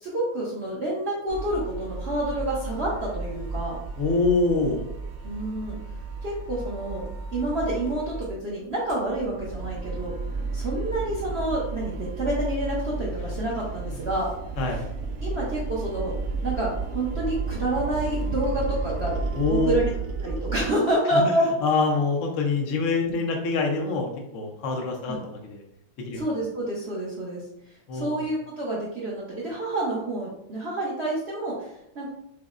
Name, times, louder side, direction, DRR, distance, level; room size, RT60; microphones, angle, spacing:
voice 1, 0.0-3.8 5.2-5.8 6.2-7.1 7.3-10.1 10.5-14.3 15.2-16.1 16.4-19.1 19.5-19.9 20.2-21.4 25.1-25.2 26.1-27.4 27.9-32.1, right 1 dB, 55° right, -7 dB, 0.7 m, -28 dB
sound 1, 1.3-8.4 8.7-20.7, right 4 dB, 75° right, 1.2 m, -33 dB
voice 2, 4.0-4.8 14.6-14.8 19.3-19.7 21.1-21.2 21.6-24.1 24.3-25.2 25.4-25.6 26.0-26.2 27.9-28.2, left 3 dB, 70° left, 1 dB, 0.7 m, -25 dB
6.1 x 2.0 x 2.4 m, 0.77 s
omnidirectional pair, 2.0 m